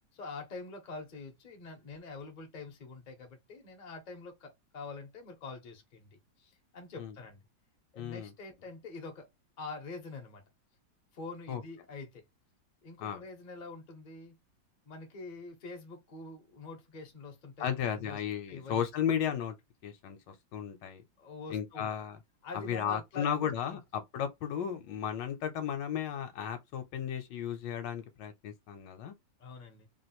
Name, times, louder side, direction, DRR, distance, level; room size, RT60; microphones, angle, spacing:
voice 1, 0.1-7.4 7.9-9.3 9.6-10.4 11.1-12.2 12.8-14.4 14.9-18.2 18.5-18.9 21.2-21.9 22.4-23.8 29.4-29.9, left 3 dB, 45° left, 0.6 m, -45 dB
voice 2, 8.0-8.3 11.5-11.6 13.0-13.2 17.6-19.5 19.8-21.0 21.5-22.2 22.5-29.1, left 8 dB, 75° left, 1.2 m, -34 dB
3.1 x 2.4 x 2.8 m
omnidirectional pair, 2.1 m